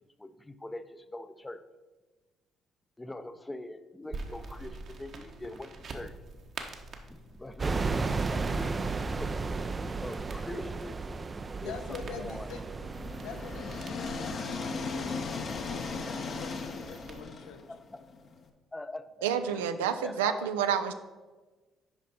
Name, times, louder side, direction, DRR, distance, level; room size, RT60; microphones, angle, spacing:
voice 1, 0.2-1.6 3.0-6.1 7.1-8.8 9.2-9.5 10.0-11.0 11.6-12.5 17.7-18.0 18.7-19.1 19.4-20.8, left 2 dB, 15° left, 11 dB, 0.6 m, -43 dB
sound 1, 4.1-17.2, right 3 dB, 55° right, 1.1 m, -47 dB
Ocean Waves, 7.6-13.8, right 4 dB, 35° right, 0.4 m, -33 dB
voice 2, 11.6-12.6 13.2-17.6, left 6 dB, 80° left, 6 dB, 0.7 m, -45 dB
sound 2, 12.5-18.4, left 4 dB, 55° left, 1.0 m, -37 dB
voice 3, 19.2-20.9, right 8 dB, 90° right, 9 dB, 0.4 m, -29 dB
8.9 x 5.2 x 4.2 m, 1.3 s
hypercardioid pair, 55°, 0 cm